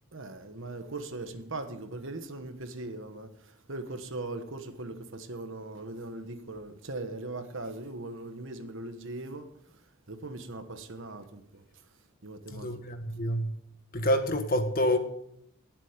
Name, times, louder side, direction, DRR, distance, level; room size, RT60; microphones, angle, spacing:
voice 1, 0.1-3.3 3.7-9.5 10.1-11.6 12.2-12.7, right 2 dB, 60° right, 1.4 m, -39 dB
voice 2, 12.5-13.5 13.9-15.0, equal, 40° left, 1.4 m, -27 dB
18.5 x 7.6 x 5.2 m
head